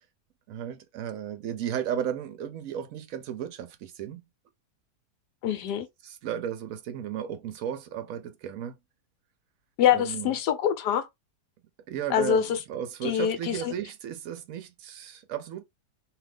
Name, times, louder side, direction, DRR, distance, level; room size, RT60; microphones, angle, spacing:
voice 1, 0.5-4.2 6.0-8.8 9.9-10.3 11.9-15.6, right 9 dB, 65° right, 0.9 m, -34 dB
voice 2, 5.4-5.9 9.8-11.1 12.1-12.5 13.0-13.7, left 9 dB, 85° left, 1.3 m, -25 dB
2.8 x 2.4 x 3.4 m
omnidirectional pair, 1.7 m